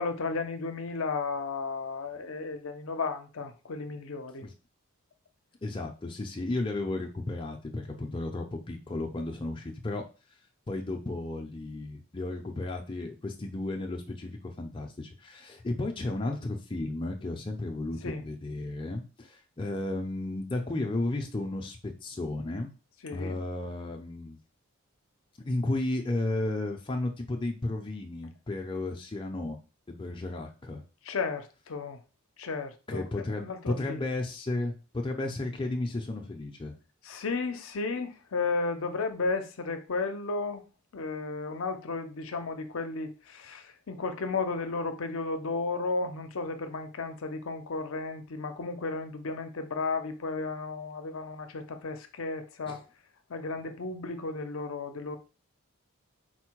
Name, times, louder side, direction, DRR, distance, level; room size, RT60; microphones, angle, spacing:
voice 1, 0.0-4.5 18.0-18.2 23.0-23.4 31.0-32.0 32.4-34.1 37.0-40.6 40.9-52.8 53.3-55.2, left 3 dB, 65° left, 0.6 m, -34 dB
voice 2, 5.6-10.0 10.7-22.7 23.1-24.4 25.4-29.6 29.9-30.8 32.9-36.7 52.7-52.8, left 2 dB, 20° left, 0.5 m, -33 dB
4.3 x 2.1 x 4.5 m
head